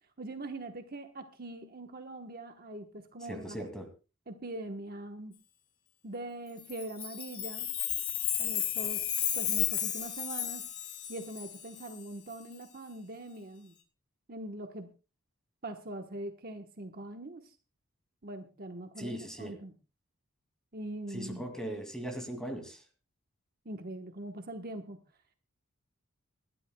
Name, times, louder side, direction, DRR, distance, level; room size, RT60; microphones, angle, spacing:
voice 1, 0.2-3.6 4.3-5.3 6.0-7.7 8.4-10.7 11.1-13.7 14.3-14.9 15.6-17.6 18.2-19.7 20.7-21.5 23.6-25.0, right 1 dB, 45° right, 1.1 m, -42 dB
voice 2, 3.3-3.9 19.0-19.6 21.1-22.8, right 1 dB, 5° left, 2.3 m, -39 dB
Chime, 6.7-11.8, left 10 dB, 75° left, 2.4 m, -33 dB
27.0 x 12.0 x 2.2 m
head